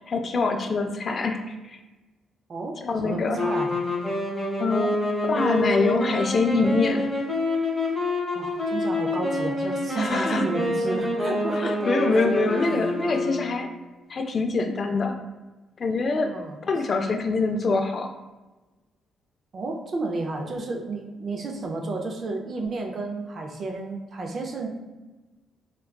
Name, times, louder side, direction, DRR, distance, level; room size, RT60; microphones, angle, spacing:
voice 1, 0.0-1.8 2.8-3.4 4.6-7.1 10.0-10.4 11.6-13.7 14.1-15.2 15.8-16.3 16.7-18.1, left 3 dB, 45° left, 5 dB, 0.3 m, -24 dB
voice 2, 2.5-3.7 8.3-12.5 16.2-16.6 19.5-24.7, right 3 dB, 45° right, 2 dB, 0.4 m, -32 dB
sound 1, 3.3-13.8, left 1 dB, 5° right, 1.1 m, -27 dB
3.5 x 2.2 x 2.2 m, 1.2 s
cardioid pair, 90°, 0 cm